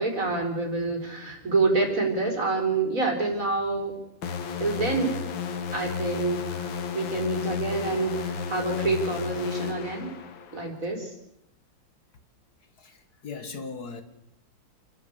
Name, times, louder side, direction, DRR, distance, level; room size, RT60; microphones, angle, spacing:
voice 1, 0.0-3.9 4.3-5.2 5.7-10.1 10.5-11.1, right 3 dB, 45° right, 1 dB, 5.1 m, -27 dB
sound 1, 4.2-10.7, left 6 dB, 85° left, 2.3 m, -33 dB
voice 2, 12.8-14.0, left 4 dB, 55° left, 8 dB, 2.0 m, -38 dB
29.0 x 13.0 x 8.2 m, 0.81 s
omnidirectional pair, 2.0 m